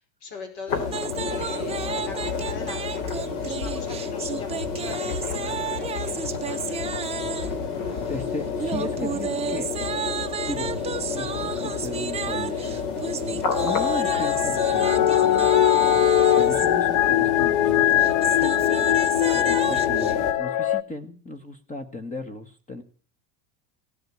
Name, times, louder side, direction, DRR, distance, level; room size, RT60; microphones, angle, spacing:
voice 1, 0.2-0.9 1.3-6.8, left 5 dB, 55° left, 5 dB, 5.3 m, -41 dB
sound 1, 0.7-20.3, left 5 dB, 70° left, 3.9 m, -30 dB
sound 2, 0.9-7.6 8.6-16.7 17.9-20.1, right 7 dB, 15° right, 0.7 m, -33 dB
voice 2, 7.8-9.8 10.5-10.8 11.1-12.8 13.6-16.1 16.4-18.6 19.3-22.8, left 2 dB, 15° left, 10 dB, 1.7 m, -36 dB
sound 3, 13.5-20.8, left 12 dB, 40° left, 0.8 m, -21 dB
17.5 x 7.9 x 8.8 m, 0.42 s
supercardioid pair, 135°, 48 cm